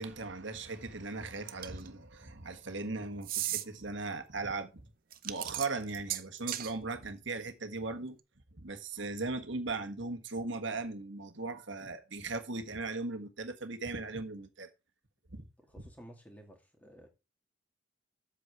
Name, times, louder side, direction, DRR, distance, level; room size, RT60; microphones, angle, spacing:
voice 1, 0.0-4.9 5.2-8.2 8.6-14.7 15.3-15.4, right 3 dB, 65° right, 1.5 m, -38 dB
sound 1, 1.5-1.9 3.2-3.6 5.1-6.7, right 13 dB, 45° right, 0.6 m, -35 dB
voice 2, 15.7-17.1, equal, 10° left, 2.2 m, -53 dB
8.0 x 7.3 x 4.7 m
head